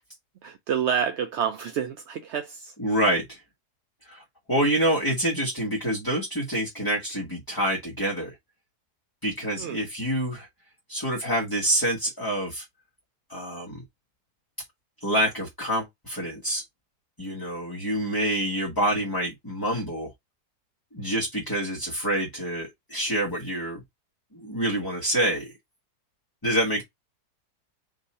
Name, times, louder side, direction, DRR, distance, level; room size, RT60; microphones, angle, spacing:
voice 1, 0.4-2.7 9.6-9.8, right 8 dB, 65° right, 0.7 m, -28 dB
voice 2, 2.8-3.4 4.1-4.2 4.5-8.3 9.2-10.5 10.9-12.6 13.3-13.8 15.0-16.6 17.2-20.1 20.9-23.8 24.3-25.5 26.4-26.8, right 1 dB, 15° left, 1.1 m, -27 dB
3.9 x 2.7 x 4.1 m
omnidirectional pair, 1.7 m